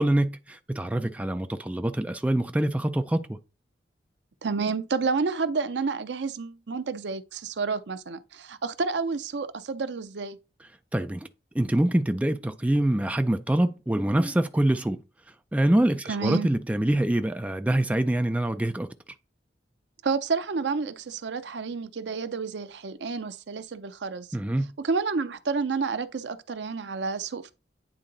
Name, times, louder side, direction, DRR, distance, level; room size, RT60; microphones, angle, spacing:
voice 1, 0.0-3.4 10.9-11.3 11.5-15.0 15.5-18.9 24.3-24.7, right 1 dB, 10° right, 0.4 m, -25 dB
voice 2, 4.4-10.4 16.1-16.5 20.0-24.3 24.8-27.5, right 4 dB, 75° right, 0.6 m, -30 dB
9.0 x 3.8 x 3.8 m
head